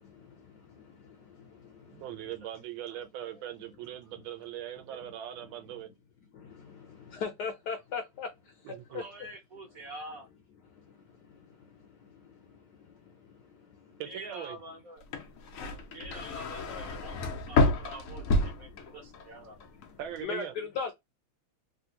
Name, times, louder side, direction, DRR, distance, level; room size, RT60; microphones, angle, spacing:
voice 1, 1.9-5.9 8.6-9.0 14.0-14.6 20.0-20.5, right 11 dB, 75° right, 1.3 m, -40 dB
voice 2, 2.6-3.5 4.8-5.1 8.9-10.3 14.0-15.0 15.9-19.6, right 1 dB, 60° right, 1.0 m, -47 dB
voice 3, 7.1-8.3 8.9-9.0 20.2-20.9, left 5 dB, 70° left, 1.0 m, -34 dB
sound 1, 15.0-19.3 19.6-20.2, left 2 dB, 85° left, 0.7 m, -29 dB
3.4 x 2.4 x 2.7 m
omnidirectional pair, 2.3 m